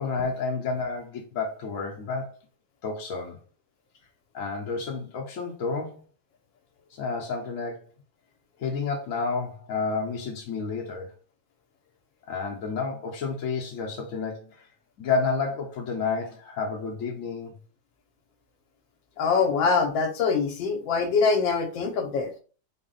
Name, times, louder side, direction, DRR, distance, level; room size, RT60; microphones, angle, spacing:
voice 1, 0.0-2.3 2.8-3.4 4.3-6.0 6.9-7.9 8.6-11.1 12.3-14.7 15.0-17.5, left 4 dB, 70° left, 0 dB, 0.8 m, -30 dB
voice 2, 19.2-22.3, left 5 dB, 85° left, 5 dB, 1.3 m, -24 dB
4.0 x 2.0 x 3.8 m, 0.39 s
omnidirectional pair, 2.0 m